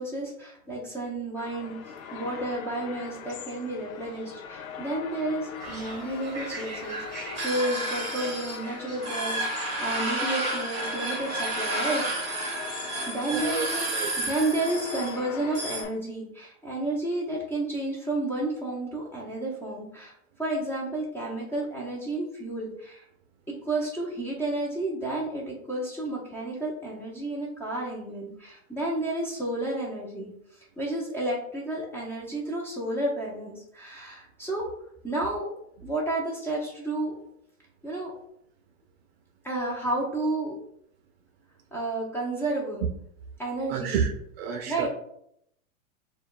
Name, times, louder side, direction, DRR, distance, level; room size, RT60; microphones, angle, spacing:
voice 1, 0.0-1.8 2.1-12.0 13.1-20.1 20.4-23.0 23.6-30.3 30.8-34.7 35.0-35.5 35.8-37.2 37.8-38.1 39.4-40.5 41.7-42.8 43.4-44.0 44.7-44.9, right 2 dB, 5° left, -5 dB, 0.6 m, -31 dB
sound 1, 1.4-15.9, left 6 dB, 80° left, 0.6 m, -41 dB
sound 2, 5.6-15.8, right 2 dB, 15° right, 1.2 m, -32 dB
voice 2, 13.3-13.7 13.9-14.1 43.7-44.9, right 7 dB, 50° right, 5 dB, 0.5 m, -30 dB
6.7 x 2.2 x 2.4 m, 0.75 s
hypercardioid pair, 135°, 41 cm